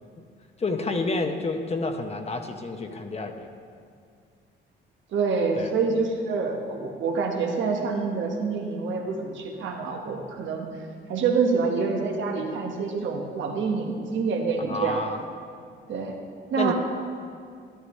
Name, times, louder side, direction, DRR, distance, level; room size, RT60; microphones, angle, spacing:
voice 1, 0.6-3.5 5.6-5.7 14.7-15.2 16.6-16.7, left 3 dB, 30° left, 5 dB, 0.8 m, -29 dB
voice 2, 5.1-10.7 11.1-15.0 15.9-16.2 16.5-16.7, right 4 dB, 75° right, 2 dB, 1.2 m, -26 dB
11.5 x 11.5 x 3.2 m, 2.2 s
cardioid pair, 90°, 20 cm